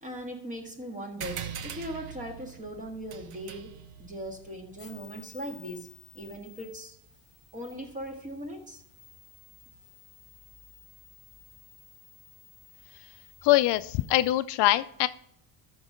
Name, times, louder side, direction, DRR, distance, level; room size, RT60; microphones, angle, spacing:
voice 1, 0.0-5.9 6.1-7.0 7.5-8.8, equal, 15° right, 3 dB, 1.8 m, -39 dB
sound 1, 1.2-6.1, right 8 dB, 75° right, 1.1 m, -43 dB
sound 2, 4.7-14.3, left 6 dB, 30° left, 1.6 m, -55 dB
voice 2, 13.4-15.1, left 16 dB, 65° left, 13 dB, 0.5 m, -23 dB
13.0 x 5.4 x 3.6 m, 0.71 s
cardioid pair, 135°, 44 cm